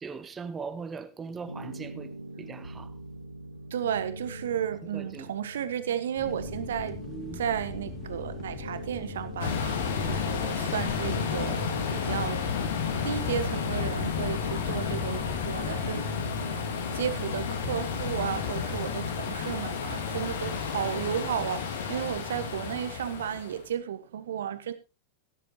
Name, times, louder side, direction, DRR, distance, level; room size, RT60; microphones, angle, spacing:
voice 1, 0.0-2.9 4.8-5.3 7.1-7.4 9.8-10.2, right 5 dB, 20° right, 1.0 m, -40 dB
sound 1, 1.5-18.4, right 1 dB, 90° right, 1.9 m, -42 dB
voice 2, 3.7-7.0 7.4-12.4 13.0-16.1 16.5-16.7 16.9-24.7, right 9 dB, 60° right, 1.4 m, -33 dB
sound 2, 6.2-15.9, left 10 dB, 30° left, 0.8 m, -43 dB
sound 3, 9.4-23.6, left 6 dB, 60° left, 2.0 m, -31 dB
18.0 x 11.0 x 2.9 m
figure-of-eight pair, 90°, 0 cm